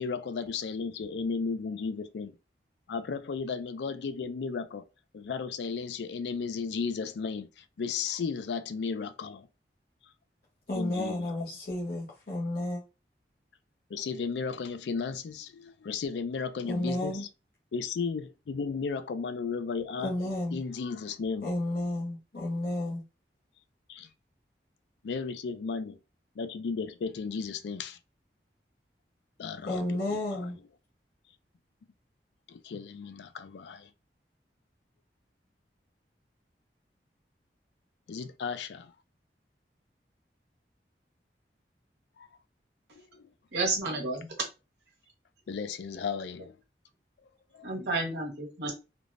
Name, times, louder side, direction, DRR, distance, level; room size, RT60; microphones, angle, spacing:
voice 1, 0.0-2.4 2.9-4.9 5.1-9.5 10.7-11.3 13.9-17.3 17.7-20.1 20.5-21.4 22.4-22.5 23.9-24.1 25.0-26.0 26.4-28.0 29.4-30.5 32.5-33.9 38.1-38.9 42.2-42.3 42.9-43.3 45.5-46.6 47.5-47.7, left 5 dB, 80° left, 0.4 m, -34 dB
voice 2, 10.7-12.8 16.6-17.3 20.0-20.6 21.4-23.0 29.6-30.6, left 1 dB, 55° left, 0.7 m, -32 dB
voice 3, 43.5-44.3 47.6-48.7, right 2 dB, 80° right, 1.1 m, -31 dB
3.3 x 2.1 x 2.4 m
head